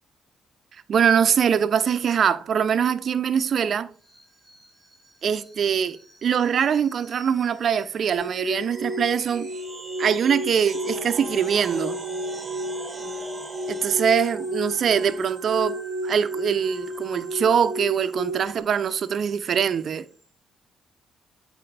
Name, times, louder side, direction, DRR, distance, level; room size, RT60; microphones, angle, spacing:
voice 1, 0.9-3.9 5.2-9.5 10.0-12.0 13.7-20.1, right 7 dB, 55° right, 0.6 m, -23 dB
sound 1, 4.0-20.3, right 2 dB, 15° right, 1.7 m, -44 dB
sound 2, 8.1-18.6, right 1 dB, 70° left, 2.9 m, -33 dB
8.5 x 4.4 x 3.3 m
cardioid pair, 90°, 0 cm